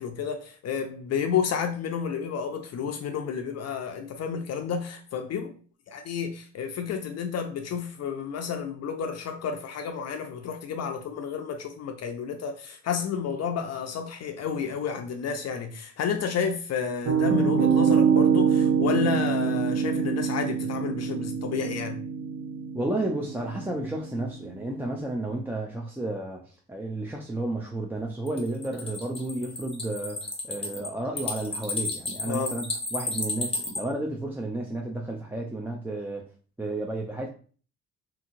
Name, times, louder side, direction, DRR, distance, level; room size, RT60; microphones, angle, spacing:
voice 1, 0.0-5.5 5.9-22.0 32.2-32.5, left 6 dB, 55° left, 0.5 m, -31 dB
Piano, 17.1-24.9, right 6 dB, 75° right, 0.6 m, -25 dB
voice 2, 22.7-36.3 36.6-37.3, right 2 dB, 5° right, 0.4 m, -32 dB
sound 1, 28.3-33.8, left 2 dB, 20° left, 0.8 m, -32 dB
2.8 x 2.8 x 2.6 m
cardioid pair, 90°, 30 cm